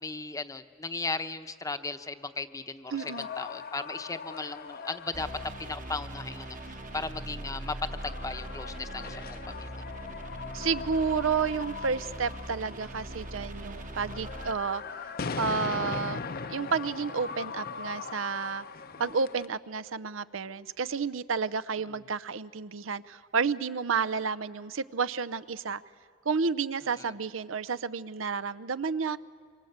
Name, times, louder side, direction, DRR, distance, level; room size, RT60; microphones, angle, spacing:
voice 1, 0.0-5.3 5.6-6.6 6.9-7.8 8.0-9.7 26.8-27.1, left 3 dB, 15° left, 10 dB, 0.8 m, -36 dB
sound 1, 2.9-19.5, left 5 dB, 50° left, 0.7 m, -40 dB
voice 2, 2.9-3.3 10.5-14.8 15.4-16.2 16.5-18.6 19.0-25.8 26.3-29.2, right 5 dB, 85° right, 16 dB, 0.7 m, -31 dB
sound 2, 5.1-14.5, right 1 dB, 40° right, 1.2 m, -41 dB
26.5 x 25.0 x 8.1 m, 2.1 s
head